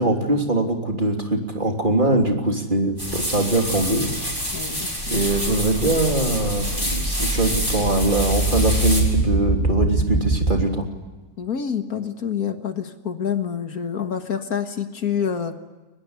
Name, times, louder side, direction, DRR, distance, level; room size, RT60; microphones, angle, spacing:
voice 1, 0.0-4.1 5.1-10.8, right 2 dB, 30° right, 2 dB, 3.3 m, -22 dB
sound 1, 3.0-9.0, equal, 15° left, 7.3 m, -28 dB
voice 2, 4.5-5.3 11.4-15.6, left 7 dB, 65° left, 7 dB, 2.0 m, -27 dB
sound 2, 5.0-10.5, right 2 dB, 30° left, 5.5 m, -24 dB
24.0 x 20.5 x 9.7 m, 1.2 s
omnidirectional pair, 1.7 m